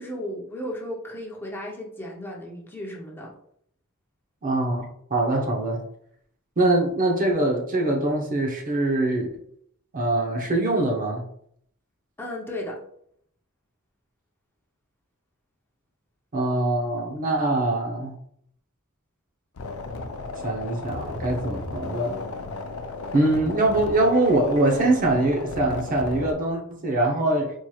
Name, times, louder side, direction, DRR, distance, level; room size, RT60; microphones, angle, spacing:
voice 1, 0.0-3.3 12.2-12.8, left 1 dB, 10° left, -2 dB, 0.5 m, -35 dB
voice 2, 4.4-5.8 6.6-9.3 9.9-11.2 16.3-18.1 20.4-22.2 23.1-27.5, right 2 dB, 40° right, 1 dB, 0.7 m, -23 dB
sound 1, 19.6-26.3, left 3 dB, 85° left, 0.5 m, -34 dB
4.5 x 3.0 x 2.3 m, 0.69 s
head